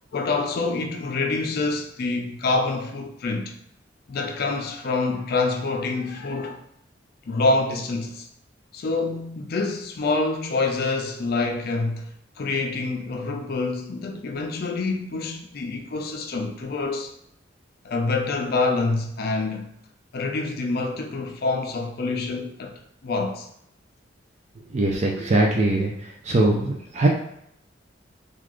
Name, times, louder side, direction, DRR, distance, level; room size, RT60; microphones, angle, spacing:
voice 1, 0.1-3.6 4.1-6.6 7.3-8.3 8.7-12.1 12.4-17.1 17.8-19.7 20.1-22.7 23.0-23.5, left 3 dB, 55° left, 0.4 m, -26 dB
voice 2, 24.7-25.9 26.2-27.1, right 2 dB, 35° right, 0.4 m, -21 dB
3.8 x 2.4 x 3.0 m
head